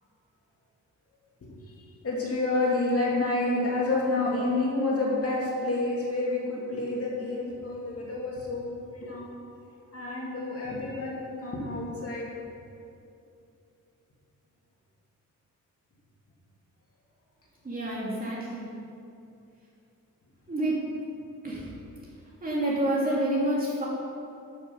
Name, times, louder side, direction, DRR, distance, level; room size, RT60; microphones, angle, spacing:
voice 1, 1.4-1.8 2.0-9.4 9.9-12.3, left 2 dB, 45° left, -4 dB, 2.4 m, -29 dB
voice 2, 17.6-18.7 20.5-21.0 21.4-21.7 22.4-23.9, right 1 dB, 30° right, -6 dB, 2.8 m, -28 dB
12.5 x 7.2 x 5.5 m, 2.7 s
wide cardioid pair, 160°, 32 cm